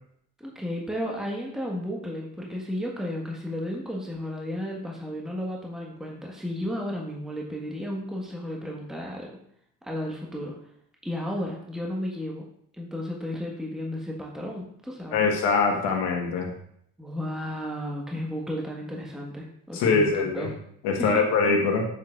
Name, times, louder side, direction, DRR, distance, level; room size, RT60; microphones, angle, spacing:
voice 1, 0.4-9.3 9.8-10.5 11.0-12.4 12.7-15.2 17.0-20.5 21.0-21.3, equal, ahead, -2 dB, 1.6 m, -33 dB
voice 2, 15.1-16.5 19.7-20.5 20.8-21.9, left 4 dB, 70° left, 2 dB, 1.5 m, -23 dB
7.4 x 6.5 x 2.5 m, 0.70 s
hypercardioid pair, 50°, 43 cm